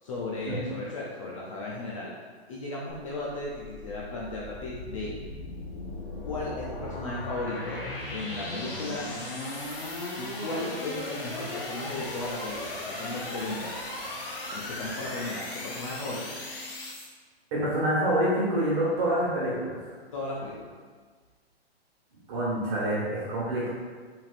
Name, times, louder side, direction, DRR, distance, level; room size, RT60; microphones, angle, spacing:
voice 1, 0.0-2.1 2.5-5.1 6.2-7.8 8.1-9.1 10.2-13.7 14.5-16.4 20.1-20.7, left 2 dB, 30° left, -5 dB, 0.5 m, -35 dB
sound 1, 2.9-17.1, left 2 dB, 55° left, 1.2 m, -37 dB
voice 2, 17.5-19.8 22.3-23.7, right 1 dB, 25° right, -6 dB, 1.4 m, -26 dB
5.4 x 3.5 x 2.5 m, 1.5 s
hypercardioid pair, 160°, 33 cm